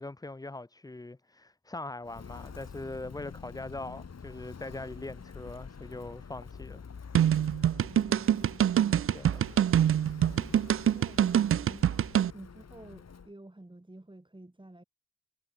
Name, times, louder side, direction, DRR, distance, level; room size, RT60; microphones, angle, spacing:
voice 1, 0.0-6.9 9.1-9.5 10.8-11.0, left 2 dB, 10° left, 0.7 m, -41 dB
Walk footsteps, 2.0-13.3, left 6 dB, 55° left, 2.7 m, -47 dB
sound 1, 7.1-12.3, right 10 dB, 45° right, 0.4 m, -25 dB
voice 2, 7.8-8.6 10.8-12.0 12.3-14.8, right 1 dB, 15° right, 4.9 m, -50 dB
cardioid pair, 55°, 31 cm